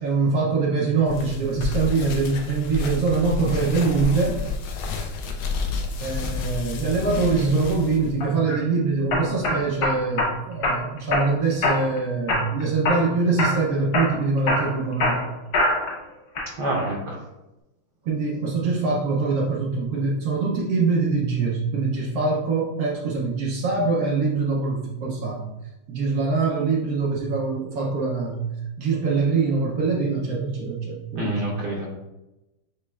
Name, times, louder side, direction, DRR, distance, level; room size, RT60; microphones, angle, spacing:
voice 1, 0.0-4.4 6.0-15.2 18.0-25.4 25.9-28.4 28.8-31.4, right 4 dB, 80° right, -2 dB, 0.8 m, -23 dB
sound 1, 1.1-8.1, left 4 dB, 75° left, 1.4 m, -30 dB
sound 2, 8.2-8.6 9.1-10.3 10.6-11.3 11.6-12.0 12.3-13.1 13.4-13.6 13.9-16.0 16.4-16.9, left 2 dB, 55° left, 1.3 m, -23 dB
voice 2, 16.6-17.2 31.2-31.9, right 1 dB, 65° right, -2 dB, 1.1 m, -27 dB
6.3 x 3.0 x 2.3 m, 0.96 s
omnidirectional pair, 2.4 m